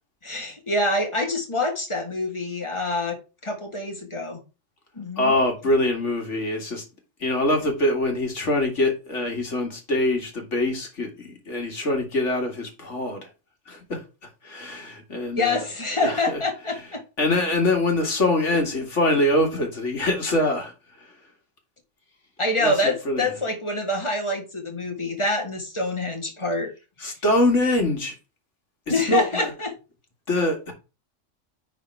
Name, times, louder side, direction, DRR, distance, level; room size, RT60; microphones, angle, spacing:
voice 1, 0.2-3.2 3.4-4.4 5.0-5.3 15.4-17.0 22.4-26.7 28.9-29.7, left 2 dB, 25° left, 1.9 m, -26 dB
voice 2, 5.2-6.8 7.2-13.2 13.7-14.0 14.4-15.7 16.0-16.4 17.2-20.7 21.0-21.1 22.6-23.3 27.0-28.1 28.9-29.5 30.3-30.7, left 1 dB, 65° left, 2.5 m, -24 dB
9.9 x 4.2 x 4.6 m
omnidirectional pair, 1.3 m